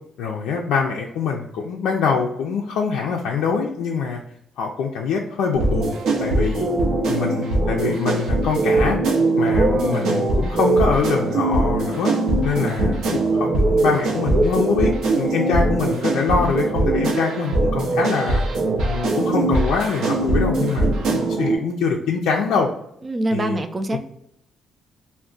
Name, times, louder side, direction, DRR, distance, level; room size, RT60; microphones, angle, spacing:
voice 1, 0.2-4.2 4.6-6.7 7.1-9.0 9.4-12.1 12.4-18.4 18.8-22.7 23.3-23.6 23.9-24.0, left 5 dB, 85° left, -1 dB, 0.3 m, -24 dB
sound 1, 5.5-21.5, right 2 dB, 80° right, 0.6 m, -21 dB
voice 2, 9.5-10.2 23.0-24.0, right 1 dB, 25° right, 8 dB, 0.3 m, -25 dB
2.3 x 2.1 x 3.7 m, 0.75 s
cardioid pair, 90°, 0 cm